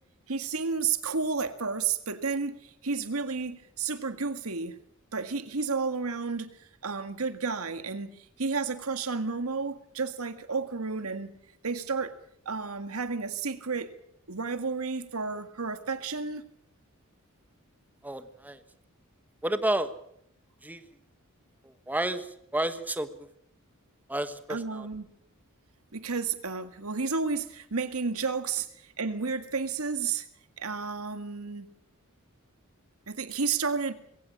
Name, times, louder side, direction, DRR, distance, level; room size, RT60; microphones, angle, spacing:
voice 1, 0.3-4.8 5.1-6.6 6.8-11.3 11.6-12.2 12.5-13.9 14.3-16.5 24.5-25.1 25.9-30.3 30.6-31.7 33.1-33.9, right 4 dB, 85° right, 1.8 m, -31 dB
voice 2, 18.0-18.6 19.4-19.9 20.6-20.8 21.9-22.3 22.5-23.1 24.1-24.9, right 1 dB, 10° right, 1.3 m, -30 dB
21.5 x 17.0 x 8.7 m
head